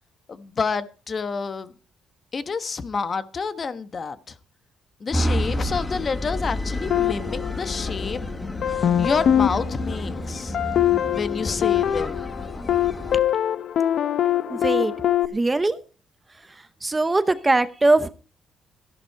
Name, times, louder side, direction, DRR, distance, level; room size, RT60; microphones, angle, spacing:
voice 1, 0.3-1.7 2.3-4.3 5.0-8.2 9.0-10.6 11.1-12.2, left 5 dB, 30° left, 1.1 m, -28 dB
sound 1, 5.1-13.2, left 1 dB, 15° left, 1.4 m, -30 dB
sound 2, 6.9-8.2 8.6-15.3, left 10 dB, 55° left, 1.0 m, -23 dB
voice 2, 14.5-14.9 15.3-15.8 16.4-18.1, right 2 dB, 15° right, 0.7 m, -21 dB
14.5 x 11.5 x 4.5 m
cardioid pair, 140°, 0 cm